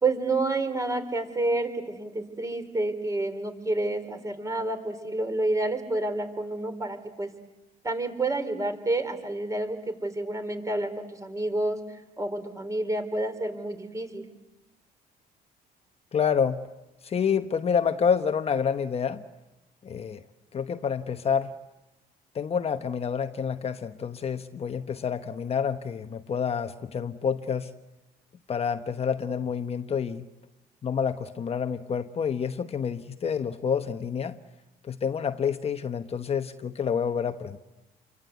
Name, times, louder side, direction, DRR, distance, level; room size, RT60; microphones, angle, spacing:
voice 1, 0.0-7.3 7.8-11.8 12.2-14.2, right 2 dB, 20° right, 8 dB, 4.1 m, -29 dB
voice 2, 16.1-16.7 17.0-19.2 19.8-20.2 20.5-21.5 22.3-27.7 28.5-30.3 30.8-34.4 34.9-37.6, left 7 dB, 35° left, 9 dB, 1.0 m, -28 dB
29.5 x 24.0 x 8.2 m, 1.0 s
cardioid pair, 110°, 17 cm